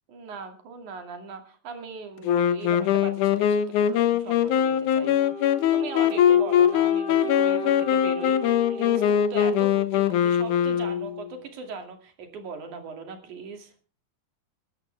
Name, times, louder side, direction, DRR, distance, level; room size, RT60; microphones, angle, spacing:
voice 1, 0.1-13.7, right 4 dB, 55° right, 5 dB, 3.7 m, -39 dB
Wind instrument woodwind instrument, 2.2-11.3, left 10 dB, 70° left, 1.9 m, -22 dB
Wind instrument woodwind instrument 2, 5.0-10.1, right 1 dB, 30° left, 4.2 m, -37 dB
23.5 x 13.0 x 3.4 m, 0.38 s
omnidirectional pair, 4.5 m